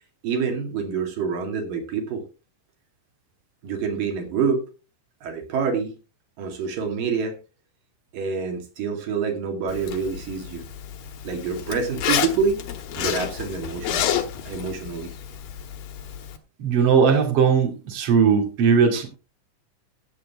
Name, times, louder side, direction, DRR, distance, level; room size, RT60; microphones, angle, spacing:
voice 1, 0.2-2.2 3.6-4.6 5.2-5.9 6.4-7.3 8.1-10.6 11.2-12.6 13.0-14.1 14.5-15.1, right 5 dB, 80° right, 4 dB, 3.9 m, -26 dB
Zipper (clothing), 9.7-16.4, left 9 dB, 85° left, 3.0 m, -30 dB
voice 2, 16.6-19.1, right 6 dB, 45° right, 2 dB, 3.1 m, -18 dB
16.0 x 7.9 x 3.5 m, 0.32 s
omnidirectional pair, 3.9 m